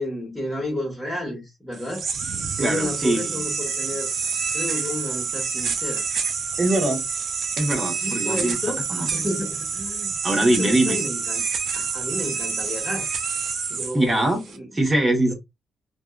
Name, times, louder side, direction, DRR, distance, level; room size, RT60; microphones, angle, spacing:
voice 1, 0.0-2.1 2.6-4.2 4.5-6.0 8.0-11.4 11.7-13.1 13.7-14.3 14.5-14.7 15.3-15.4, left 1 dB, ahead, 1.2 m, -31 dB
sound 1, 1.7-14.6, right 5 dB, 60° right, 0.5 m, -28 dB
voice 2, 2.6-3.4 6.6-7.0 7.6-8.6 8.9-9.1 10.2-11.0 13.9-14.4 14.7-15.3, right 1 dB, 20° right, 1.0 m, -22 dB
2.6 x 2.3 x 2.3 m
cardioid pair, 90°, 0 cm